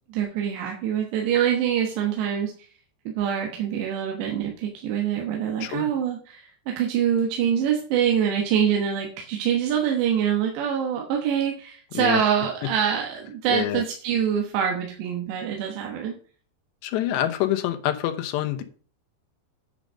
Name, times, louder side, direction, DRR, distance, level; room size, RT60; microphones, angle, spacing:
voice 1, 0.1-2.5 3.1-16.2, right 8 dB, 85° right, 2 dB, 3.5 m, -25 dB
voice 2, 13.5-13.8 16.8-18.6, left 13 dB, 85° left, 7 dB, 3.2 m, -26 dB
10.5 x 5.3 x 6.3 m, 0.43 s
omnidirectional pair, 4.9 m